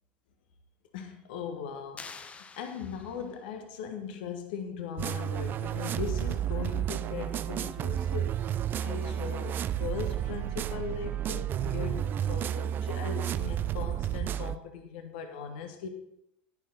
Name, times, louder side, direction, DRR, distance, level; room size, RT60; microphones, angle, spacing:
voice 1, 0.9-8.4 8.8-15.9, left 6 dB, 75° left, 6 dB, 1.4 m, -39 dB
sound 1, 2.0-3.5, left 5 dB, 25° left, 0.8 m, -47 dB
sound 2, 5.0-14.6, right 10 dB, 40° right, 0.4 m, -31 dB
10.5 x 9.6 x 4.0 m, 0.78 s
hypercardioid pair, 80°, 5 cm